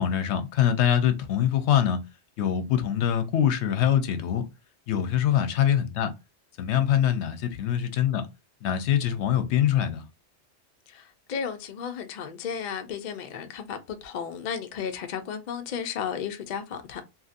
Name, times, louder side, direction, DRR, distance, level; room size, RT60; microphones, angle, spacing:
voice 1, 0.0-2.0 2.4-4.5 4.9-6.1 6.6-8.3 8.6-10.0, left 10 dB, 75° left, 0.8 m, -24 dB
voice 2, 10.9-17.0, left 7 dB, 55° left, 0.5 m, -34 dB
2.7 x 2.6 x 2.4 m
omnidirectional pair, 1.2 m